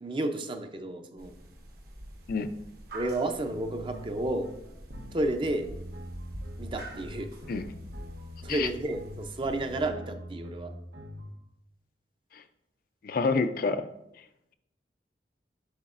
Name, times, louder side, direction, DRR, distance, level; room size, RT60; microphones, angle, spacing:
voice 1, 0.0-1.3 2.9-4.5 5.1-5.7 6.6-7.3 8.4-10.7, right 1 dB, 30° right, 6 dB, 0.5 m, -31 dB
sound 1, 1.2-9.9, right 1 dB, 55° right, 1.0 m, -46 dB
sound 2, 3.4-11.3, equal, 90° right, 1.0 m, -44 dB
voice 2, 13.0-13.8, left 4 dB, 55° left, 10 dB, 0.4 m, -27 dB
7.9 x 6.6 x 2.5 m, 0.82 s
head